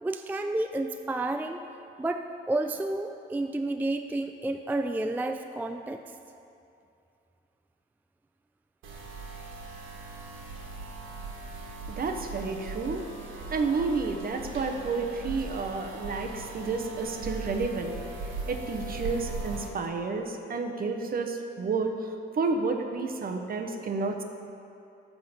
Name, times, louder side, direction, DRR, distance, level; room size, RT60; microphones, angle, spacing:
voice 1, 0.0-1.6 2.0-6.0, right 2 dB, 10° right, 6 dB, 0.3 m, -30 dB
sound 1, 8.8-19.7, right 3 dB, 85° right, 1.6 m, -39 dB
voice 2, 11.9-13.1 13.5-18.0 18.5-22.1 22.4-24.2, right 4 dB, 45° right, 5 dB, 1.0 m, -30 dB
11.5 x 3.8 x 7.3 m, 2.7 s
cardioid pair, 90°, 20 cm